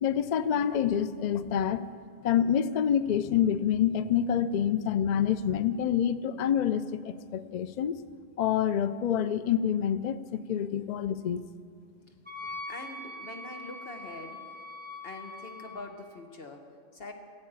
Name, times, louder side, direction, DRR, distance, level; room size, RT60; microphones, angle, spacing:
voice 1, 0.0-1.8 2.2-7.9 8.4-11.4, left 9 dB, 75° left, 13 dB, 0.4 m, -27 dB
Wind instrument woodwind instrument, 12.2-15.9, left 2 dB, 20° right, 2.2 m, -42 dB
voice 2, 12.7-14.4 15.0-17.1, left 2 dB, 50° left, 3 dB, 1.6 m, -44 dB
15.5 x 8.5 x 8.8 m, 2.2 s
omnidirectional pair, 1.3 m